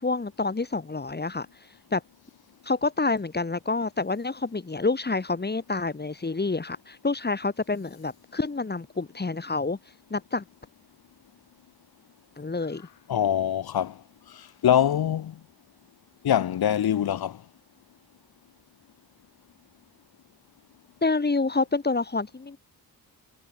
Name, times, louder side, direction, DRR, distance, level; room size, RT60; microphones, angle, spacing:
voice 1, 0.0-1.5 1.9-2.0 2.6-9.8 10.1-10.4 12.4-12.8 21.0-22.6, left 3 dB, 25° left, 7.1 m, -28 dB
voice 2, 13.1-14.0 14.3-15.3 16.2-17.4, left 10 dB, 70° left, 3.6 m, -24 dB
cardioid pair, 95°, 38 cm